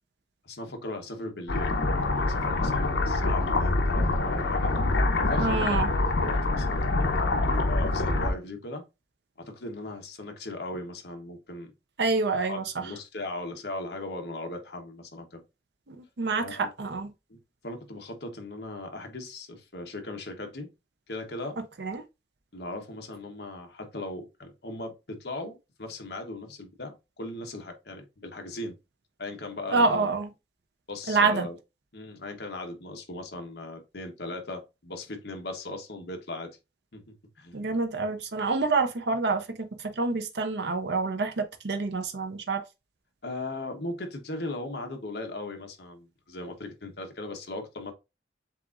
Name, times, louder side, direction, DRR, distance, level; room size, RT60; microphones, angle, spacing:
voice 1, 0.4-4.7 5.3-5.8 6.2-6.9 7.6-8.8 9.4-11.7 12.5-15.4 16.4-16.7 17.3-17.4 17.6-20.7 21.1-21.6 22.5-28.8 29.2-30.1 30.9-31.6 31.9-36.5 36.9-37.6 43.2-47.9, left 2 dB, 65° left, 1.1 m, -38 dB
sound 1, 1.5-8.3, left 2 dB, 80° left, 0.8 m, -25 dB
voice 2, 5.4-5.9 12.0-12.6 15.9-17.1 21.8-22.0 29.7-30.3 31.1-31.5 37.5-39.7 40.0-42.6, right 3 dB, 70° right, 0.6 m, -27 dB
7.5 x 2.5 x 2.5 m
head